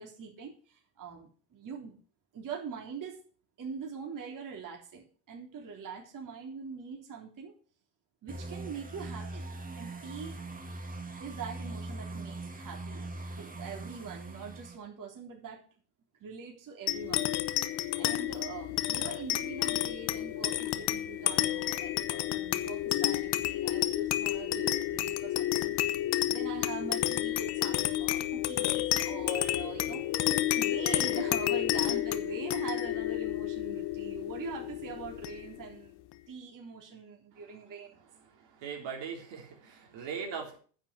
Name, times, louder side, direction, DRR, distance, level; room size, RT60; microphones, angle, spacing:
voice 1, 0.0-2.0 2.3-3.2 3.6-7.5 8.2-9.4 9.8-10.4 11.2-15.6 16.2-17.3 18.0-25.8 26.3-30.1 30.5-35.9 36.3-38.0, right 5 dB, 40° right, 0 dB, 3.6 m, -43 dB
sound 1, 8.3-14.8, right 2 dB, 15° right, 2.3 m, -41 dB
sound 2, 16.9-35.7, left 14 dB, 50° left, 1.1 m, -31 dB
voice 2, 38.4-40.6, right 6 dB, 60° right, 1 dB, 3.7 m, -40 dB
9.8 x 6.3 x 8.2 m, 0.42 s
supercardioid pair, 100°, 50 cm